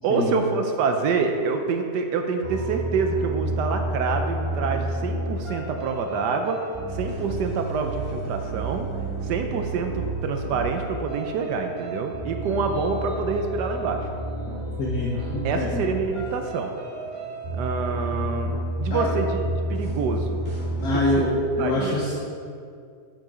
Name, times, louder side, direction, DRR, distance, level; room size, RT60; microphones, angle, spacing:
voice 1, 0.0-6.6 6.9-8.9 9.2-14.1 15.4-16.7 17.5-20.4 20.9-21.3 21.6-22.0, right 4 dB, 85° right, 5 dB, 1.3 m, -27 dB
sound 1, 2.4-21.2, right 1 dB, 35° right, 2.5 m, -31 dB
voice 2, 14.8-15.8 18.9-19.1 20.8-21.3 21.6-22.1, left 1 dB, 65° left, -4 dB, 1.5 m, -25 dB
8.0 x 6.6 x 4.9 m, 2.3 s
omnidirectional pair, 1.8 m